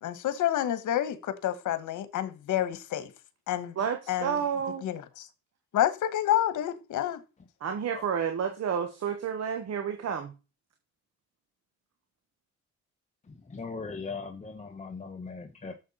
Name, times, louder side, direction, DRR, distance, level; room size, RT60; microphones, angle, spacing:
voice 1, 0.0-3.1 3.5-3.7 4.1-4.4 4.8-5.3 5.7-7.2, left 11 dB, 75° left, 1.5 m, -29 dB
voice 2, 3.8-4.8 7.6-10.3, right 7 dB, 55° right, 1.5 m, -30 dB
voice 3, 13.3-15.7, left 4 dB, 25° left, 1.3 m, -39 dB
11.0 x 7.3 x 4.3 m
cardioid pair, 90°, 30 cm